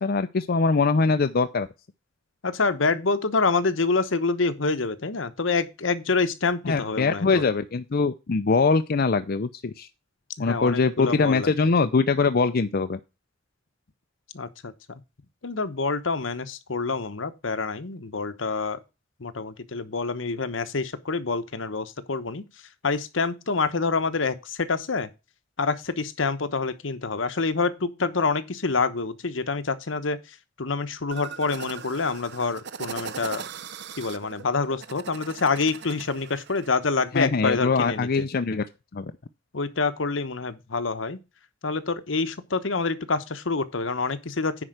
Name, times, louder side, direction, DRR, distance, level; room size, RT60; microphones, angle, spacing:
voice 1, 0.0-1.7 6.6-9.9 10.4-13.0 37.1-38.6 38.9-39.1, left 4 dB, 50° left, 0.5 m, -23 dB
voice 2, 2.4-7.4 10.4-11.5 14.3-14.7 15.4-18.8 19.2-22.4 22.8-25.1 25.6-30.2 30.6-33.4 34.0-38.3 39.5-41.2 41.6-44.6, left 4 dB, 75° left, 1.0 m, -27 dB
sound 1, 31.1-36.7, right 6 dB, 60° right, 0.7 m, -39 dB
9.9 x 4.6 x 6.4 m
head